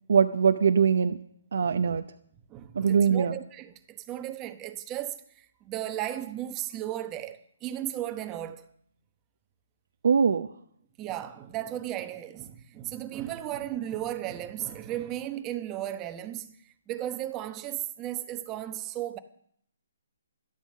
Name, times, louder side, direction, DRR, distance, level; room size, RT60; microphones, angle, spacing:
voice 1, 0.1-1.2 1.5-2.0 2.8-3.4 10.0-10.5, right 6 dB, 65° right, 0.7 m, -22 dB
voice 2, 2.5-8.6 11.0-19.2, right 12 dB, 20° right, 1.0 m, -35 dB
12.5 x 11.5 x 6.3 m
hypercardioid pair, 145°, 0 cm